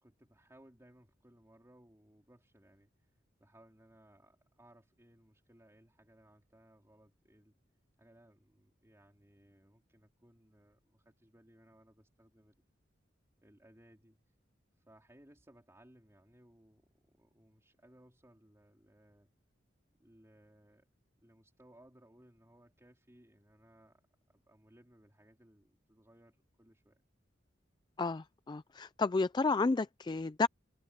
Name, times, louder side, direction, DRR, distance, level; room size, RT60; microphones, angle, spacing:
voice 1, 0.0-3.1 3.4-7.6 8.0-12.5 13.4-14.2 14.8-19.3 19.9-20.9 21.2-24.0 24.3-27.0, right 1 dB, 15° right, 3.1 m, -63 dB
voice 2, 28.0-30.5, left 3 dB, 25° left, 0.4 m, -31 dB
head